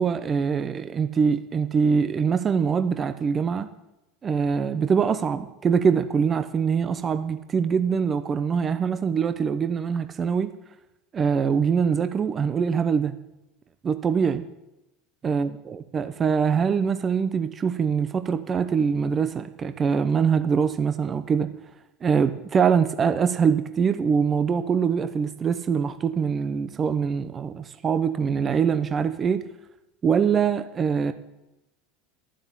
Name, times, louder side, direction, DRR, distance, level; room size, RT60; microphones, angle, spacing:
voice 1, 0.0-3.7 4.2-10.5 11.1-13.1 13.8-14.4 15.2-21.5 22.0-29.5 30.0-31.1, right 6 dB, 30° right, 0.8 m, -23 dB
12.0 x 7.7 x 9.9 m
hypercardioid pair, 100°, 0 cm